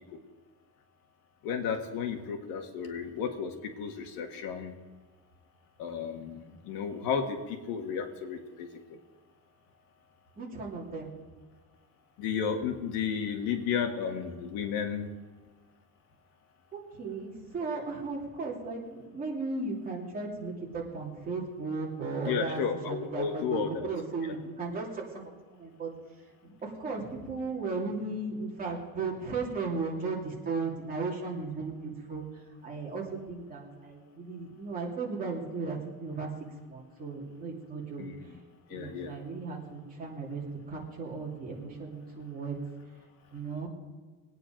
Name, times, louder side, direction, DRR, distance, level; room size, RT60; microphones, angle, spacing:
voice 1, 1.4-4.7 5.8-8.7 12.2-15.1 22.3-23.9 38.0-38.4 38.7-39.1, left 7 dB, 70° left, 4 dB, 1.8 m, -33 dB
voice 2, 10.4-11.1 16.7-22.6 22.9-25.9 26.4-32.2 32.6-36.3 36.6-38.0 38.7-42.6 43.3-43.7, right 4 dB, 25° right, -3 dB, 2.8 m, -36 dB
21.0 x 9.3 x 5.2 m, 1.4 s
cardioid pair, 175°, 36 cm